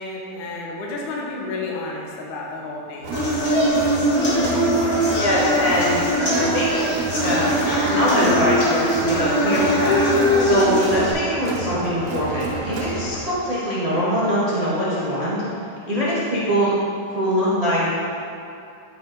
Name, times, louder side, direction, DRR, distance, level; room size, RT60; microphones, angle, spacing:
voice 1, 0.0-3.1, left 3 dB, 80° left, -2 dB, 2.5 m, -31 dB
Crowd, 3.0-13.3, right 3 dB, 70° right, 2.0 m, -31 dB
sound 1, 3.1-11.1, equal, 35° left, 1.6 m, -21 dB
voice 2, 5.2-6.0 6.3-6.8 7.2-7.5 7.9-10.0 10.4-15.4 15.9-16.7 17.1-17.9, equal, 50° right, -9 dB, 0.4 m, -22 dB
11.5 x 4.9 x 4.0 m, 2.6 s
omnidirectional pair, 3.5 m